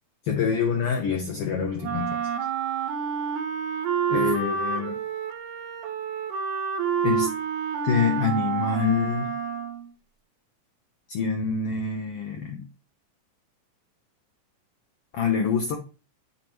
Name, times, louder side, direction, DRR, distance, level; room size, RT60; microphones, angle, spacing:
voice 1, 0.2-2.2 4.1-5.0 7.0-7.3 7.8-9.3 11.1-12.6 15.1-15.8, left 6 dB, 75° left, 1.4 m, -26 dB
Wind instrument woodwind instrument, 1.8-9.9, right 7 dB, 80° right, 2.3 m, -28 dB
9.5 x 4.7 x 3.1 m
omnidirectional pair, 3.8 m